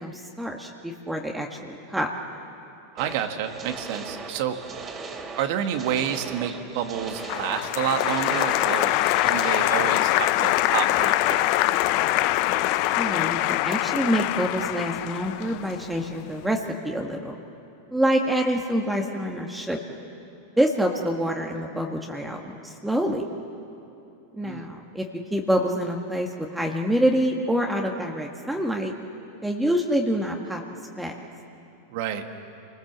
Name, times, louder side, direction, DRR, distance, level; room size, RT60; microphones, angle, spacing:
voice 1, 0.0-2.1 13.0-17.4 17.9-20.0 20.6-23.2 24.4-25.1 25.3-28.9 29.4-30.6 31.0-31.3, equal, 5° right, 1 dB, 1.9 m, -26 dB
sound 1, 3.0-9.6, right 4 dB, 30° right, 3.3 m, -38 dB
voice 2, 3.0-4.6 5.4-8.9 9.3-11.6 24.4-24.7 31.9-32.2, right 9 dB, 60° right, 6 dB, 1.9 m, -29 dB
Applause, 7.2-16.3, left 16 dB, 55° left, 0.7 m, -24 dB
28.0 x 20.0 x 7.5 m, 2.8 s
hypercardioid pair, 100°, 0 cm